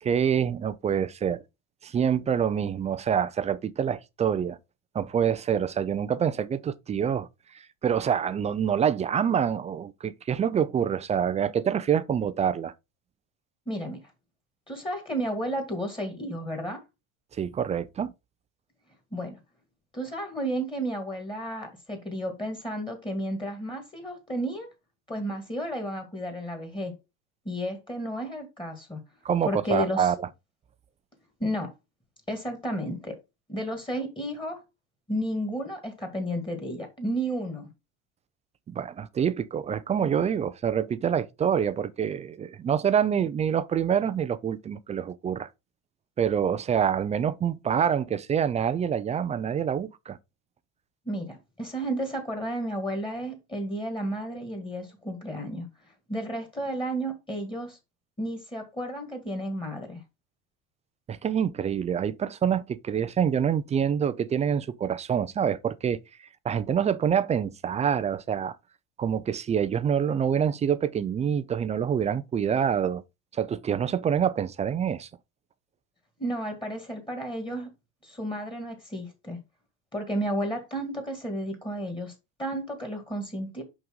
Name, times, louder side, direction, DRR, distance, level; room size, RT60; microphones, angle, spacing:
voice 1, 0.0-1.4 1.8-4.6 4.9-7.3 7.5-12.7 17.4-18.1 29.2-30.2 38.7-45.5 46.2-50.2 61.1-66.0 66.4-68.5 69.0-73.0 73.3-75.1, right 8 dB, 20° right, 0.3 m, -26 dB
voice 2, 13.7-14.0 14.7-16.8 19.1-19.4 19.9-24.7 25.1-27.0 27.5-29.0 29.5-30.1 31.4-31.7 32.3-33.2 33.5-34.6 35.1-37.7 51.1-55.7 56.1-57.8 58.2-60.0 76.2-77.7 78.0-79.4 79.9-82.1 82.4-83.6, right 1 dB, 10° left, 1.9 m, -32 dB
5.8 x 5.3 x 3.7 m
supercardioid pair, 120°, 39 cm